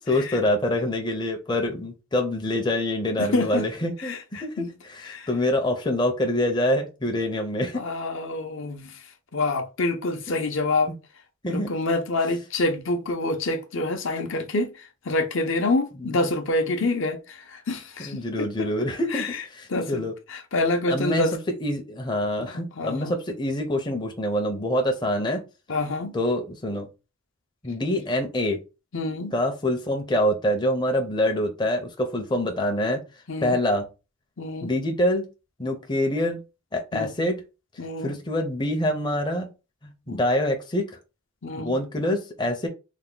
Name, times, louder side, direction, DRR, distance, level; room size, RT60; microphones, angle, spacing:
voice 1, 0.0-7.8 10.9-11.0 11.4-11.7 14.2-14.3 15.6-15.7 16.0-16.2 18.0-20.1 20.9-25.4 26.1-26.9 27.6-28.6 29.3-33.0 33.4-33.9 34.6-35.3 35.6-36.4 36.7-37.4 38.0-39.5 39.8-41.0 41.5-42.7, left 1 dB, 20° left, 0.5 m, -26 dB
voice 2, 3.2-3.6 4.0-4.2 4.6-4.7 5.1-5.3 7.7-8.9 9.3-10.9 11.5-14.7 15.1-19.4 19.7-20.0 20.3-21.3 22.4-23.1 25.7-26.1 28.9-29.3 33.3-33.6 34.4-34.7 36.9-37.1 37.8-38.1 40.1-40.2 41.4-41.7, left 2 dB, 65° left, 0.6 m, -27 dB
3.4 x 2.1 x 3.7 m
head